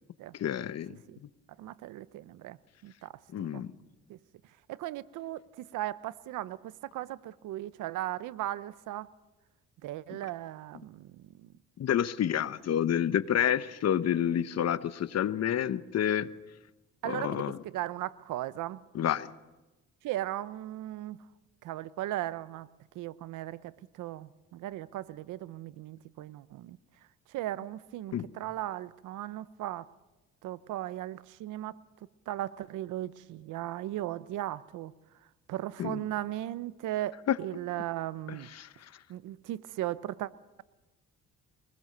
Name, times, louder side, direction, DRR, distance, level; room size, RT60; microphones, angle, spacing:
voice 1, 0.3-0.9 3.3-3.7 11.8-16.3 17.0-17.6 18.9-19.3 28.1-28.3 35.8-36.0 37.3-37.4 38.5-38.7, left 10 dB, 55° left, 1.0 m, -29 dB
voice 2, 1.6-2.6 2.8-3.1 3.5-3.6 4.1-4.2 4.7-9.1 9.8-11.5 17.0-18.8 20.0-21.2 21.6-22.7 22.9-26.8 27.3-29.9 30.4-31.8 32.3-34.9 35.5-38.5 39.1-40.3, right 14 dB, 85° right, 0.8 m, -37 dB
23.5 x 20.5 x 6.7 m
cardioid pair, 90°, 30 cm